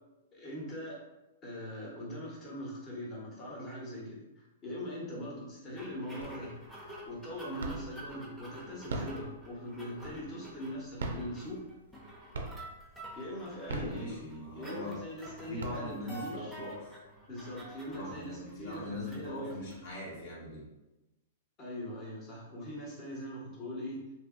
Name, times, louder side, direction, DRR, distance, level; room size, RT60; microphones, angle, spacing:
voice 1, 0.3-1.0 1.4-6.5 7.1-11.6 13.2-14.2 14.5-16.6 17.3-19.7 21.6-24.0, equal, 30° left, -3 dB, 1.1 m, -41 dB
sound 1, 5.8-20.3, equal, ahead, 0.7 m, -49 dB
sound 2, 6.2-6.7 7.1-8.1 8.7-10.5 10.9-12.0 12.3-12.9 13.5-14.6 15.1-15.2 15.4-16.3, right 2 dB, 75° right, 0.4 m, -39 dB
voice 2, 13.7-15.1 15.5-16.9 17.9-20.6, left 1 dB, 55° left, -4 dB, 1.2 m, -41 dB
2.8 x 2.6 x 2.5 m, 1.0 s
hypercardioid pair, 115°, 0 cm